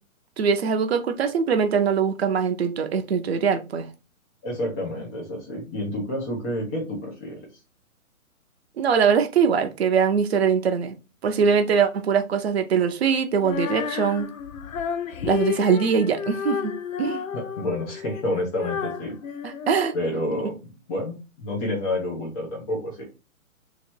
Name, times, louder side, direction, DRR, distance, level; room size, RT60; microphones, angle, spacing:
voice 1, 0.4-3.9 8.8-10.9 11.2-14.3 15.2-16.7 17.0-17.2 19.7-19.9, right 6 dB, 50° right, 7 dB, 0.7 m, -22 dB
voice 2, 4.4-7.4 17.3-19.2 19.9-20.6 20.9-23.0, left 1 dB, 10° left, -3 dB, 0.5 m, -29 dB
Female singing, 13.4-20.5, left 7 dB, 70° left, 0.7 m, -32 dB
3.1 x 3.0 x 4.4 m, 0.29 s
hypercardioid pair, 145°, 42 cm